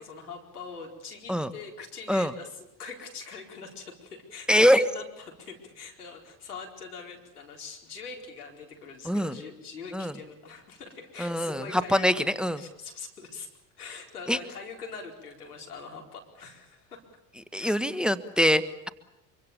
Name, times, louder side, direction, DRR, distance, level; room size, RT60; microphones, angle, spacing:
voice 1, 0.0-12.1 12.6-13.5 13.8-17.0 17.6-17.8, left 5 dB, 90° left, 1 dB, 4.6 m, -42 dB
voice 2, 4.5-4.8 9.0-9.4 9.9-10.2 11.2-12.6 14.3-14.4 17.5-18.9, equal, ahead, 12 dB, 1.3 m, -24 dB
25.5 x 24.0 x 7.0 m, 0.88 s
hypercardioid pair, 70°, 44 cm